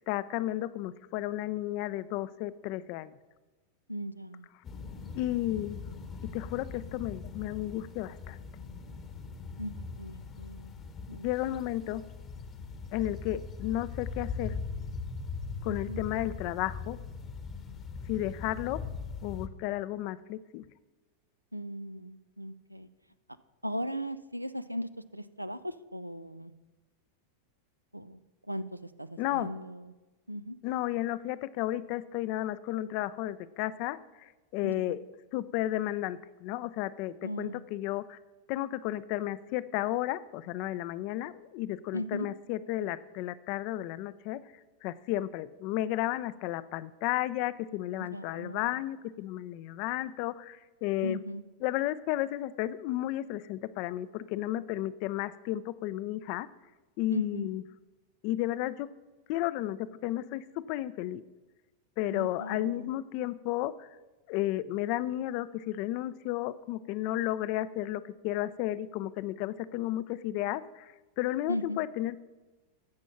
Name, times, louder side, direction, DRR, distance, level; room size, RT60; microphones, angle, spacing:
voice 1, 0.0-3.1 5.1-5.8 6.3-8.4 11.2-12.0 12.9-14.5 15.6-17.0 18.1-18.8 19.2-20.6 29.2-29.5 30.6-34.0 34.5-35.0 35.3-38.2 38.5-44.4 44.8-51.2 51.6-56.5 57.0-57.6 58.2-58.9 59.3-61.2 62.0-63.9 64.3-72.2, left 14 dB, 45° left, 16 dB, 0.5 m, -33 dB
voice 2, 3.9-4.5 9.6-10.7 11.1-11.6 15.6-16.0 21.5-22.9 23.6-26.5 27.9-28.2 28.5-28.6 29.0-29.8 30.3-30.6 34.6-35.0 37.2-37.6 41.9-42.3 48.1-48.8 51.0-51.4 57.1-57.5 62.1-62.9 71.5-71.8, equal, 90° right, 13 dB, 0.5 m, -38 dB
sound 1, 4.6-19.5, left 4 dB, 25° left, 1.0 m, -41 dB
15.0 x 6.2 x 5.7 m, 1.2 s
figure-of-eight pair, 90°, 0 cm